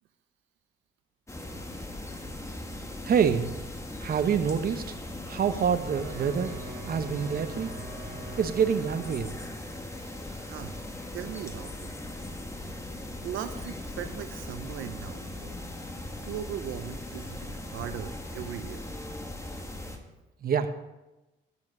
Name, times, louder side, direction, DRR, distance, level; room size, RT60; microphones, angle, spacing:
sound 1, 1.3-20.0, left 1 dB, 15° left, 1.4 m, -39 dB
voice 1, 3.0-3.5 4.0-5.0 5.3-6.5 6.8-7.7 8.4-9.4 20.4-20.7, right 7 dB, 50° right, 9 dB, 0.8 m, -26 dB
Wind instrument woodwind instrument, 5.8-9.6, right 3 dB, 65° right, 2.9 m, -44 dB
voice 2, 9.9-10.9 11.1-11.9 13.2-15.6 16.1-18.9, right 9 dB, 80° right, 9 dB, 0.7 m, -39 dB
9.9 x 7.2 x 5.4 m, 1.0 s
cardioid pair, 90°, 20 cm